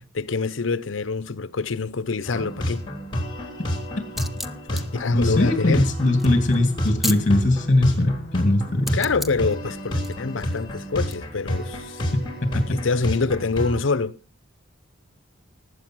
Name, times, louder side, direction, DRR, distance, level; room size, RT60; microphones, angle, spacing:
voice 1, 0.1-2.9 4.7-5.9 8.9-12.0 12.5-14.2, left 4 dB, 65° left, 0.7 m, -25 dB
sound 1, 2.3-13.8, equal, 20° left, 3.4 m, -30 dB
sound 2, 4.1-7.5 8.9-9.5 10.0-11.2, left 1 dB, ahead, 0.6 m, -34 dB
voice 2, 5.1-9.0 12.5-12.6, left 1 dB, 35° left, 2.4 m, -20 dB
19.0 x 8.3 x 6.1 m
head